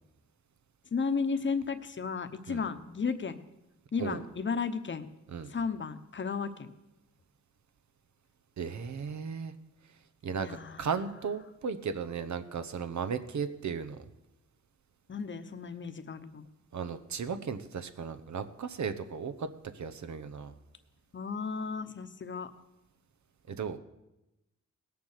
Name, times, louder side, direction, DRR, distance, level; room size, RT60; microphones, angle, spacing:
voice 1, 0.9-3.4 3.9-5.1 5.5-6.7 10.4-10.9 15.1-16.5 21.1-22.5, left 5 dB, 40° left, 10 dB, 1.0 m, -34 dB
voice 2, 8.6-9.5 10.2-14.0 16.7-20.5 23.5-23.8, right 6 dB, 65° right, 11 dB, 1.0 m, -36 dB
18.0 x 7.0 x 6.7 m, 0.94 s
cardioid pair, 80°, 30 cm